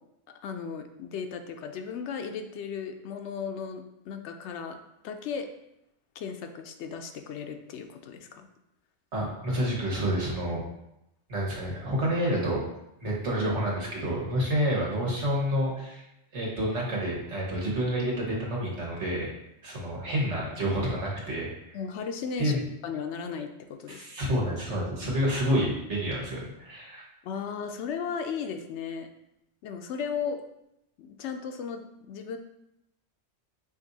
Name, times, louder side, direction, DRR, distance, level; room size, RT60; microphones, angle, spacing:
voice 1, 0.4-5.5 6.2-8.5 21.7-22.6 22.8-24.4 27.2-29.1 29.6-30.4 31.0-32.4, left 6 dB, 85° left, 6 dB, 0.9 m, -36 dB
voice 2, 9.1-10.6 11.3-12.6 13.0-16.0 16.3-19.3 19.6-21.5 22.4-22.6 23.9-27.0, equal, 90° right, -3 dB, 1.6 m, -28 dB
5.3 x 2.6 x 3.9 m, 0.83 s
omnidirectional pair, 1.1 m